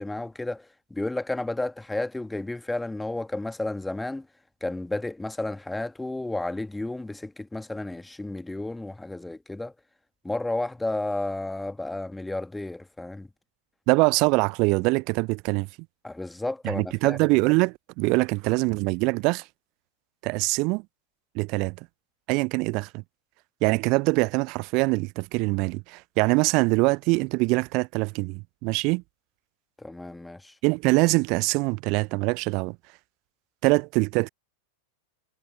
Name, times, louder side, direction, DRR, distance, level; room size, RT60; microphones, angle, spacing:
voice 1, 0.0-4.3 4.6-9.7 10.2-13.3 16.0-17.2 29.8-30.5, left 2 dB, 5° left, 1.8 m, -32 dB
voice 2, 13.9-15.7 16.6-19.4 20.2-20.8 21.3-21.8 22.3-23.0 23.6-29.0 30.6-32.8 33.6-34.3, right 27 dB, 45° right, 0.5 m, -23 dB
figure-of-eight pair, 90°, 0 cm